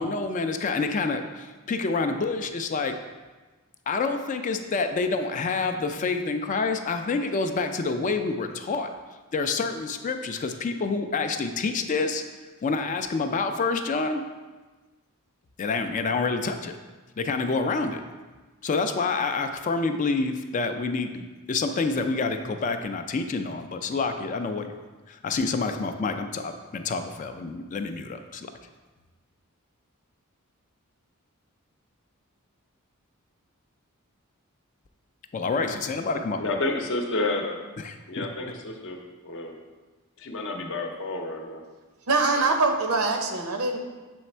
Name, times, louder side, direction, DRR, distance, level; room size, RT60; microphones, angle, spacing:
voice 1, 0.0-3.0 3.9-8.9 9.3-12.2 12.6-14.2 15.6-16.7 17.2-18.0 18.6-24.7 25.1-28.5 35.3-36.5 37.8-38.3, left 4 dB, 35° left, 7 dB, 0.3 m, -28 dB
voice 2, 36.4-37.6 38.1-39.0 39.2-39.6 40.2-41.6, left 2 dB, 60° left, 3 dB, 0.7 m, -30 dB
voice 3, 42.1-43.8, right 3 dB, 75° right, 4 dB, 0.7 m, -23 dB
7.1 x 3.3 x 4.3 m, 1.3 s
head